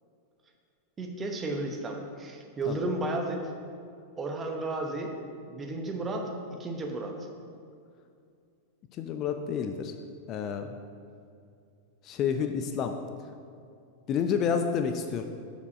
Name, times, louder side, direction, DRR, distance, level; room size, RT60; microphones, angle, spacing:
voice 1, 1.0-3.4 4.2-5.1 5.5-6.3 6.6-7.1, right 2 dB, 20° right, 3 dB, 0.9 m, -33 dB
voice 2, 9.0-9.9 10.3-10.7 12.0-13.0 14.1-15.2, left 7 dB, 35° left, 7 dB, 0.4 m, -29 dB
6.7 x 5.1 x 5.0 m, 2.4 s
figure-of-eight pair, 90°, 0 cm